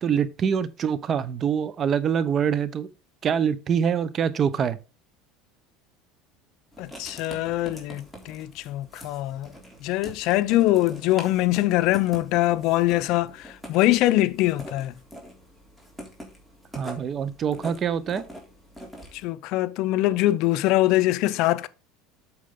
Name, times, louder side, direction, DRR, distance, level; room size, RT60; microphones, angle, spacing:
voice 1, 0.0-2.9 3.2-4.8 16.7-18.2, right 7 dB, 35° right, 1.0 m, -25 dB
Writing, 6.7-19.2, equal, ahead, 3.4 m, -44 dB
voice 2, 6.8-9.5 9.8-15.0 19.1-21.7, left 16 dB, 60° left, 0.7 m, -23 dB
8.7 x 6.6 x 3.8 m
supercardioid pair, 130°, 0 cm